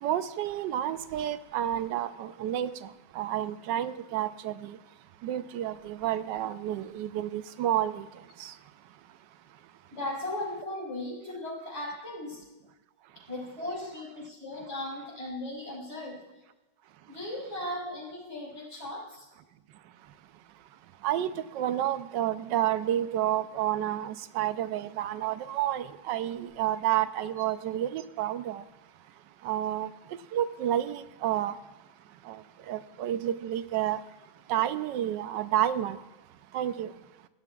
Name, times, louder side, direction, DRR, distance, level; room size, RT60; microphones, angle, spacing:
voice 1, 0.0-2.9 3.1-4.8 5.2-8.1 8.4-8.5 21.0-28.6 29.4-29.9 30.3-31.5 32.3-32.4 32.7-34.0 34.5-36.0 36.5-36.9, right 11 dB, 85° right, 1.3 m, -30 dB
voice 2, 9.9-12.4 13.3-16.2 17.1-19.2, left 1 dB, 40° left, 4.3 m, -37 dB
16.5 x 10.5 x 2.3 m
omnidirectional pair, 1.9 m